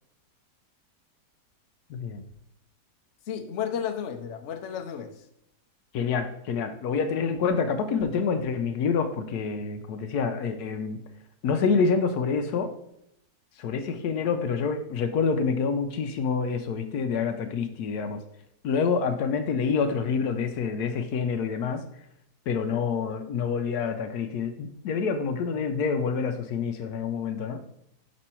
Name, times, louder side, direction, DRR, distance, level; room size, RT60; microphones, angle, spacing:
voice 1, 1.9-2.2 5.9-11.0 11.4-12.7 13.6-18.2 18.6-21.8 22.5-27.6, left 5 dB, 80° left, 8 dB, 1.2 m, -27 dB
voice 2, 3.3-5.2, left 8 dB, 55° left, 4 dB, 1.0 m, -33 dB
5.3 x 5.3 x 4.3 m, 0.76 s
omnidirectional pair, 1.7 m